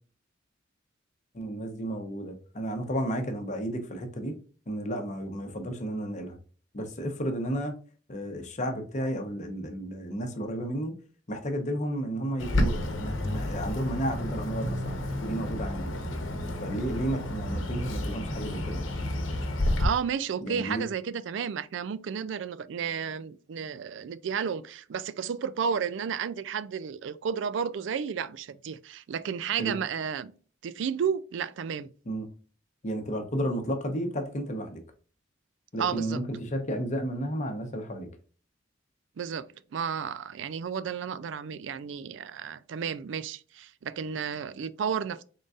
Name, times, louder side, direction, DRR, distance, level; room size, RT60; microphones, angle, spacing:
voice 1, 1.3-4.3 4.7-6.4 6.7-7.7 8.1-10.9 11.3-15.8 16.6-18.8 20.4-20.8 29.6-29.7 32.1-32.3 32.8-34.8 35.7-38.1, right 1 dB, 40° left, 0.8 m, -32 dB
Bird, 12.4-19.9, left 1 dB, 80° left, 0.9 m, -30 dB
voice 2, 19.8-30.3 30.6-31.9 35.8-36.2 39.2-45.2, right 7 dB, 65° right, 0.3 m, -32 dB
3.8 x 3.8 x 2.3 m
head